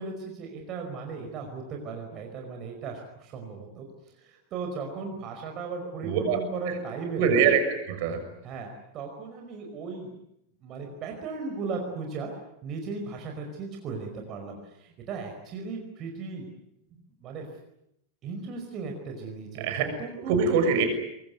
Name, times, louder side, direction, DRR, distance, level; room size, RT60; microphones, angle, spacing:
voice 1, 0.0-3.9 4.2-7.4 8.4-10.1 10.6-12.3 12.6-16.5 17.2-17.4 18.2-20.7, right 4 dB, 35° right, 2 dB, 5.1 m, -36 dB
voice 2, 6.0-6.4 6.7-6.8 7.2-8.2 19.6-19.8 20.2-20.8, right 6 dB, 50° right, 7 dB, 6.5 m, -23 dB
24.5 x 22.5 x 9.4 m, 0.79 s
figure-of-eight pair, 90°, 0 cm